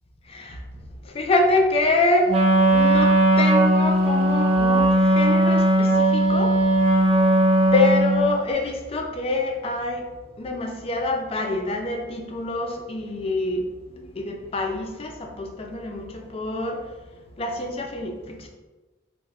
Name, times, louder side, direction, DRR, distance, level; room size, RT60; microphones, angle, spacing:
voice 1, 1.2-2.3 2.7-3.1 3.4-5.9 6.1-6.5 7.7-10.0 10.4-13.6 14.2-16.1 16.3-16.8 17.4-18.1, left 2 dB, 35° left, 3 dB, 0.4 m, -25 dB
Wind instrument woodwind instrument, 2.3-8.4, right 1 dB, 30° right, 0.4 m, -18 dB
3.0 x 2.1 x 3.5 m, 1.2 s
head